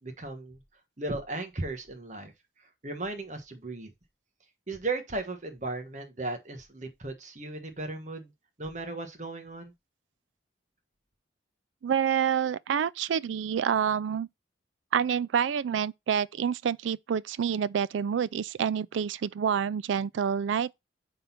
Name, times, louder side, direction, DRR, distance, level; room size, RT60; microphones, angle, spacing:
voice 1, 0.0-0.6 1.0-2.3 2.8-3.9 4.7-8.3 8.6-9.7, right 2 dB, 40° right, 1.2 m, -36 dB
voice 2, 11.8-14.3 14.9-20.7, right 8 dB, 80° right, 0.3 m, -28 dB
5.5 x 3.9 x 5.7 m
head